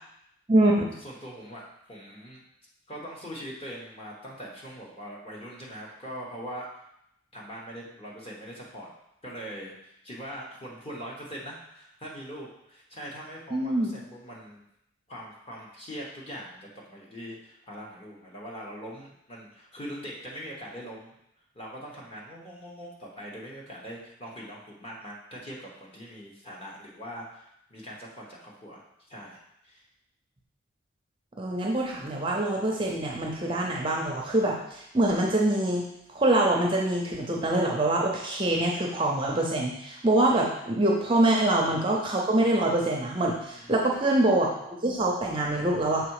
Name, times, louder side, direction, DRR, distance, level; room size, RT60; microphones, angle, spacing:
voice 1, 0.5-0.9 13.5-13.9 31.4-35.8 36.1-46.1, right 1 dB, 25° right, -1 dB, 0.6 m, -25 dB
voice 2, 1.0-2.4 2.9-6.8 7.3-8.9 9.2-14.6 15.1-21.1 21.5-28.8 29.1-29.4 29.6-29.8 43.5-43.9, equal, 25° left, -3 dB, 1.2 m, -42 dB
6.0 x 3.5 x 4.8 m, 0.78 s
head